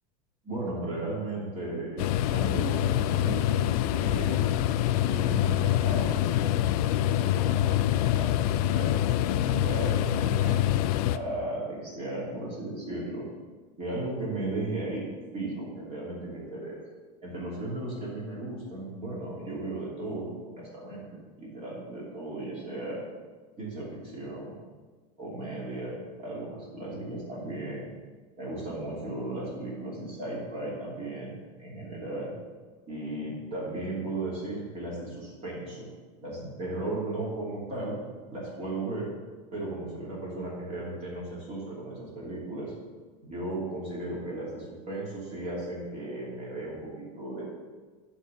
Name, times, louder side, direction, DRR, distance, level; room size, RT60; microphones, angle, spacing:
voice 1, 0.4-4.5 5.0-10.6 11.1-13.3 13.8-15.1 15.3-16.8 17.2-21.0 21.4-23.0 23.6-24.6 25.2-27.9 28.4-32.3 32.9-35.9 36.2-38.0 38.3-39.1 39.5-42.7 43.2-47.4, right 2 dB, 30° right, -5 dB, 2.9 m, -36 dB
sound 1, 2.0-11.2, left 12 dB, 65° left, 0.4 m, -25 dB
10.5 x 3.9 x 7.0 m, 1.4 s
supercardioid pair, 140°, 20 cm